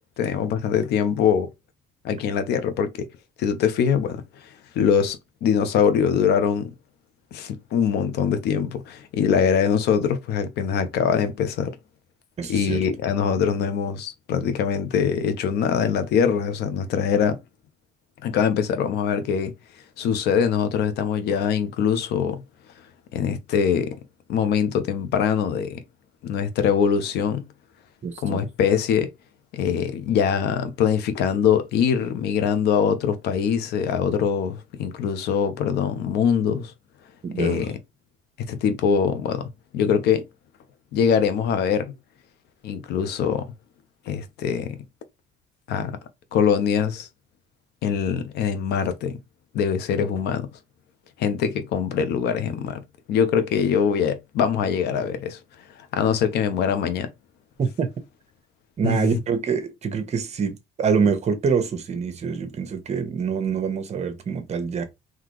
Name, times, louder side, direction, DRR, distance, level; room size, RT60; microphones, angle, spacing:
voice 1, 0.2-1.5 2.0-3.1 3.4-4.2 4.7-6.7 7.3-11.7 12.5-17.4 18.2-19.5 20.0-22.4 23.1-24.0 24.3-25.8 26.2-27.4 28.2-29.1 29.5-36.7 37.4-37.7 38.5-39.5 39.7-40.3 40.9-41.9 42.6-43.5 44.1-44.8 45.7-46.0 46.3-47.1 47.8-49.2 49.5-50.5 51.2-52.8 53.1-55.4 55.9-57.1 58.8-59.1, left 7 dB, 80° left, 0.9 m, -23 dB
voice 2, 12.4-12.8 28.0-28.4 37.2-37.6 57.6-57.9 58.8-64.8, right 6 dB, 40° right, 1.0 m, -25 dB
3.9 x 3.1 x 3.1 m
cardioid pair, 110°, 17 cm